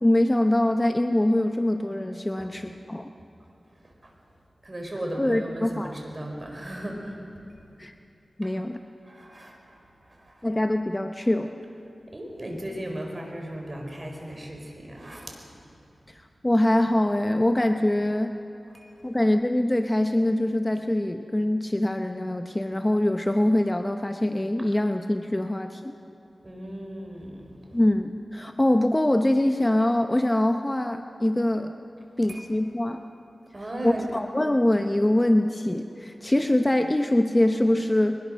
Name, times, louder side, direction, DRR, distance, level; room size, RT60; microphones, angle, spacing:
voice 1, 0.0-3.1 5.2-6.0 7.8-7.9 8.4-8.8 10.4-11.5 16.4-18.3 19.0-25.9 27.7-31.7 32.2-33.0 33.8-38.2, left 1 dB, 20° left, 6 dB, 0.9 m, -23 dB
voice 2, 4.6-7.2 8.4-8.5 9.0-10.5 12.1-15.4 18.7-18.9 26.4-27.5 32.3-32.5 33.5-34.1, right 1 dB, 35° right, 1 dB, 4.6 m, -37 dB
22.0 x 20.5 x 6.4 m, 2.9 s
wide cardioid pair, 60°, 0 cm